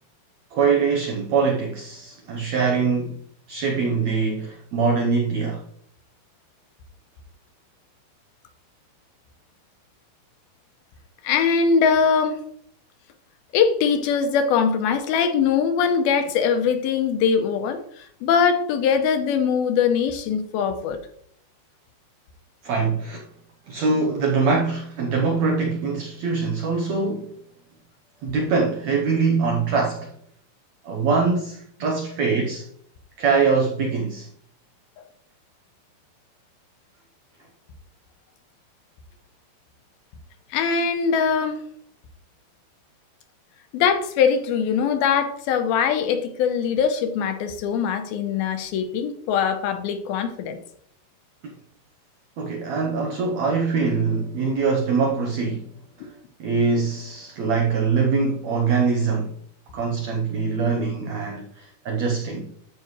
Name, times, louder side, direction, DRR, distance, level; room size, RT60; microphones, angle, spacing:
voice 1, 0.5-3.2 3.5-5.6 22.6-23.3 23.7-27.3 28.2-30.1 30.8-32.7 33.2-34.3 52.4-55.7 56.4-59.4 59.7-62.5, right 4 dB, 90° right, 1.5 m, -23 dB
voice 2, 11.2-12.4 13.5-21.0 40.5-41.6 43.7-50.6, left 6 dB, 80° left, 2.5 m, -22 dB
13.5 x 5.6 x 3.1 m
omnidirectional pair, 4.5 m